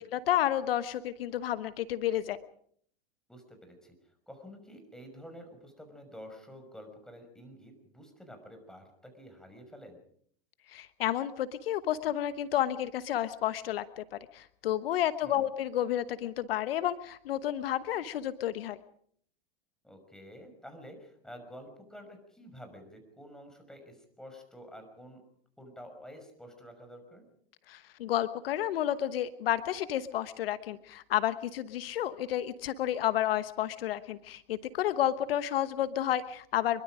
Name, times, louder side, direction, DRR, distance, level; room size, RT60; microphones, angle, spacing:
voice 1, 0.0-2.4 10.7-18.8 27.7-36.8, left 12 dB, 70° left, 13 dB, 1.2 m, -31 dB
voice 2, 3.3-4.0 4.3-10.0 15.2-15.5 19.8-25.2 25.6-27.2, equal, ahead, 5 dB, 5.9 m, -49 dB
25.0 x 23.0 x 5.0 m, 0.63 s
hypercardioid pair, 110°, 30 cm